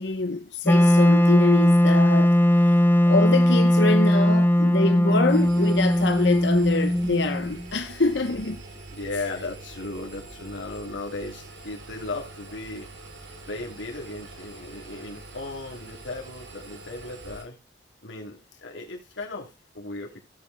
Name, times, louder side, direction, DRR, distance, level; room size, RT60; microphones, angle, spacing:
voice 1, 0.0-2.7 3.1-8.6, left 3 dB, 75° left, 1.0 m, -25 dB
Wind instrument woodwind instrument, 0.7-7.6, equal, 10° left, 0.6 m, -19 dB
Engine, 5.3-17.4, right 2 dB, 85° right, 3.6 m, -44 dB
voice 2, 8.9-12.9 13.5-17.6 18.0-20.2, left 2 dB, 90° left, 3.1 m, -36 dB
16.5 x 8.3 x 2.3 m
head